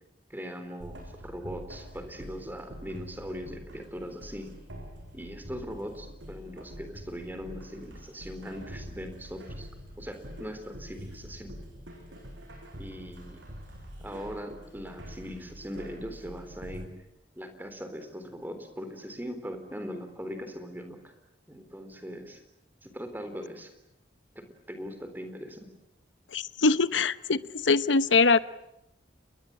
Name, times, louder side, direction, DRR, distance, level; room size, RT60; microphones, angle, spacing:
voice 1, 0.3-4.5 5.1-9.7 10.0-11.5 12.8-13.4 14.0-16.9 17.4-21.1 21.5-22.4 22.8-23.7 24.4-25.7, equal, 10° right, 3.7 m, -40 dB
sound 1, 0.8-16.9, equal, 85° right, 7.6 m, -45 dB
voice 2, 26.3-28.4, left 4 dB, 90° left, 1.0 m, -23 dB
30.0 x 22.0 x 8.9 m
head